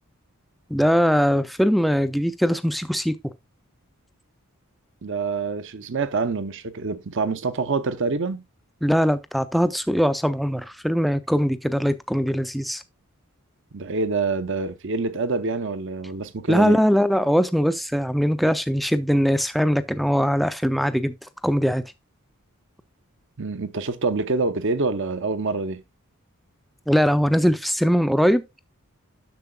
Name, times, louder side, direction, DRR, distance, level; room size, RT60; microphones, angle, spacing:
voice 1, 0.7-3.2 8.8-12.8 16.5-21.1 21.4-21.8 26.9-28.4, equal, ahead, 0.4 m, -21 dB
voice 2, 5.0-8.4 13.7-16.8 23.4-25.8, right 3 dB, 55° right, 0.7 m, -26 dB
10.5 x 6.7 x 2.2 m
head